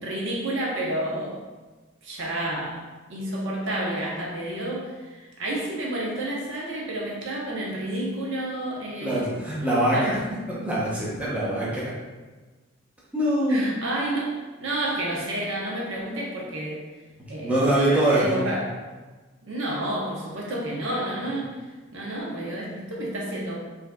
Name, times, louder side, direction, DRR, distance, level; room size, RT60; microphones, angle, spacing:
voice 1, 0.0-1.4 2.0-9.3 9.9-10.2 13.5-16.8 17.3-17.5 17.9-18.8 19.4-21.5 21.9-23.6, right 1 dB, 65° right, -3 dB, 0.8 m, -30 dB
voice 2, 9.0-10.1 10.5-11.9 13.1-13.7 17.4-18.5, right 1 dB, 5° right, -8 dB, 0.7 m, -23 dB
5.0 x 2.7 x 2.2 m, 1.3 s
head